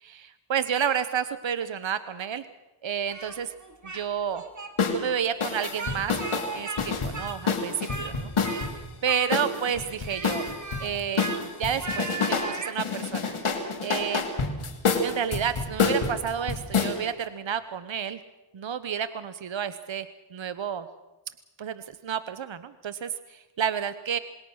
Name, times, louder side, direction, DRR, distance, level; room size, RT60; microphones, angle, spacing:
voice 1, 0.0-2.5 2.8-3.5 3.9-4.4 4.9-8.3 9.0-10.5 10.8-11.3 11.6-13.4 13.8-14.2 15.0-18.2 18.5-20.9 21.6-24.2, right 8 dB, 65° right, 12 dB, 1.0 m, -30 dB
Speech, 3.1-4.0 4.3-4.7 5.5-6.8 7.1-8.1 8.4-8.7 9.0-9.6 10.0-12.8, right 3 dB, 35° right, 3.2 m, -37 dB
sound 1, 4.8-5.0 5.4-8.7 9.3-10.8 11.2-12.5 12.8-16.9, left 4 dB, 85° left, 2.9 m, -27 dB
27.5 x 20.5 x 6.4 m, 1.0 s
cardioid pair, 50°, 48 cm